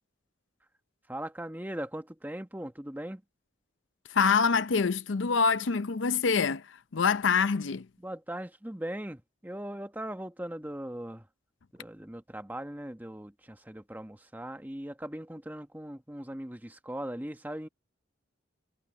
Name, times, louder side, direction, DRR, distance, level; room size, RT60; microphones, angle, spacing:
voice 1, 1.1-3.2 8.0-11.3 11.7-17.7, right 1 dB, 10° right, 1.1 m, -39 dB
voice 2, 4.1-7.9, left 5 dB, 75° left, 0.6 m, -26 dB
head